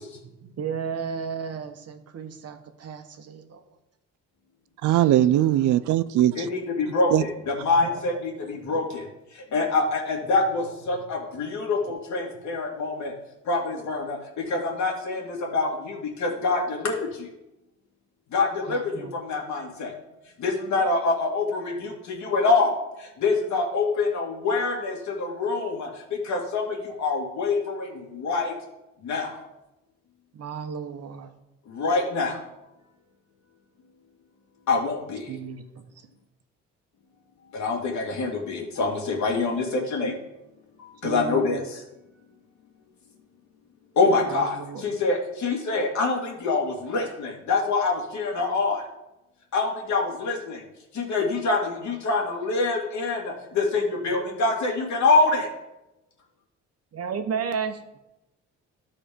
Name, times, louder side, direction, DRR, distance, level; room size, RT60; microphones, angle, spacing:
voice 1, 0.4-3.6 4.8-5.1 7.7-8.0 8.6-8.8 10.9-11.1 18.7-19.2 30.3-31.3 35.3-36.1 41.0-41.7 44.2-45.0 57.0-58.0, right 6 dB, 55° right, 1.1 m, -34 dB
voice 2, 4.8-6.5 7.1-7.2, right 12 dB, 75° right, 0.5 m, -20 dB
voice 3, 6.4-9.0 9.3-13.1 13.5-17.3 18.3-19.9 20.4-28.5 29.0-29.4 31.7-32.4 34.7-35.3 37.5-40.2 41.0-41.6 44.0-48.8 49.5-50.6 50.9-55.5, left 3 dB, 70° left, 2.3 m, -25 dB
12.5 x 4.3 x 5.1 m
cardioid pair, 90°, 30 cm